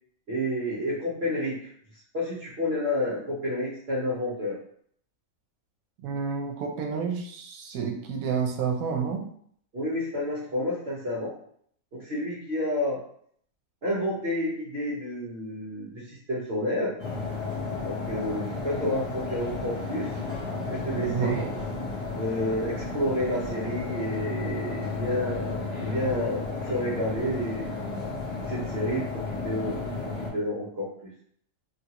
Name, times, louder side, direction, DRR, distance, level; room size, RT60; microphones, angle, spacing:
voice 1, 0.3-1.7 2.1-4.6 9.7-11.3 11.9-13.0 13.8-16.9 17.8-20.1 20.6-21.4 22.1-27.8 28.5-29.9 30.2-31.1, left 1 dB, 50° right, -8 dB, 1.0 m, -30 dB
voice 2, 6.0-9.3 20.9-21.5, right 6 dB, 80° right, 2 dB, 1.0 m, -30 dB
sound 1, 17.0-30.3, left 3 dB, 30° left, 1.0 m, -33 dB
3.0 x 2.5 x 2.8 m, 0.63 s
omnidirectional pair, 1.5 m